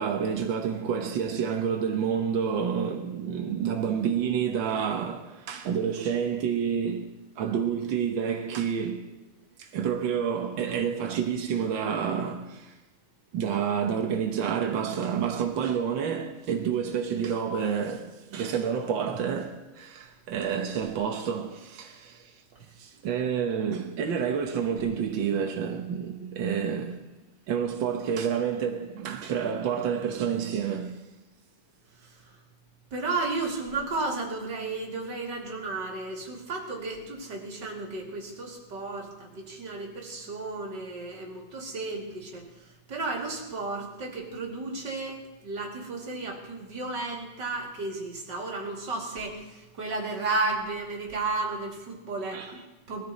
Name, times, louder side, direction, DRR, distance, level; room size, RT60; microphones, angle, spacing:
voice 1, 0.0-9.1 9.6-12.8 13.3-22.4 22.8-27.1 27.5-31.0 52.3-52.5, right 7 dB, 70° right, 1.1 m, -29 dB
voice 2, 32.9-42.4 42.9-53.0, right 3 dB, 35° right, 3.0 m, -33 dB
20.0 x 13.5 x 4.2 m
omnidirectional pair, 3.7 m